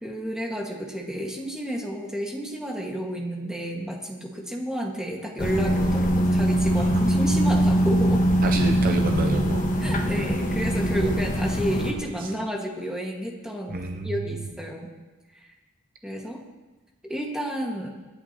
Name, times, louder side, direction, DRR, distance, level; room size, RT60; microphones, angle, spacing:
voice 1, 0.0-8.2 9.8-14.9 16.0-16.4 17.0-17.9, equal, 5° right, -1 dB, 1.9 m, -31 dB
sound 1, 5.4-11.9, right 1 dB, 40° left, 1.5 m, -22 dB
voice 2, 8.4-9.7 12.2-12.3 13.7-14.3, right 2 dB, 45° right, 5 dB, 0.7 m, -29 dB
26.0 x 10.5 x 3.1 m, 1.2 s
head